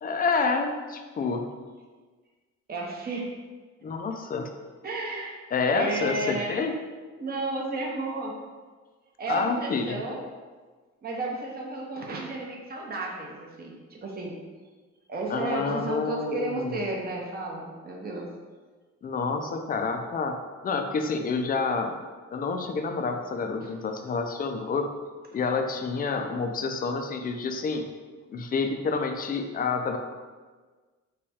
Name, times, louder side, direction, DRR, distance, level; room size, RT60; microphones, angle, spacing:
voice 1, 0.0-1.5 3.8-4.5 5.5-6.7 9.3-10.0 15.3-16.9 19.0-20.4 20.6-22.0 22.3-24.9 25.3-27.8 28.3-30.0, left 4 dB, 30° left, 5 dB, 0.4 m, -28 dB
voice 2, 2.7-3.3 4.8-5.4 5.7-6.6 7.2-8.3 9.2-10.2 11.0-14.3 15.1-18.3 23.6-23.7, right 2 dB, 35° right, -1 dB, 0.7 m, -32 dB
3.2 x 2.2 x 4.1 m, 1.4 s
cardioid pair, 80°, 29 cm